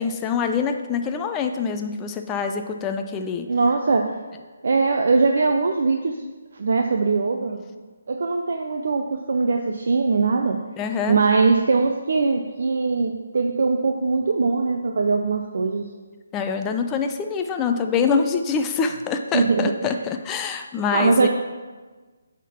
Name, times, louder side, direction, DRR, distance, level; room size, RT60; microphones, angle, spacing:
voice 1, 0.0-3.5 10.8-11.2 16.3-21.3, left 5 dB, 15° left, 6 dB, 0.5 m, -25 dB
voice 2, 3.5-4.2 4.6-6.2 6.5-7.6 8.1-10.6 11.1-15.9 19.3-19.9 20.9-21.3, right 4 dB, 60° right, 4 dB, 0.5 m, -21 dB
8.3 x 3.7 x 5.8 m, 1.3 s
figure-of-eight pair, 150°, 0 cm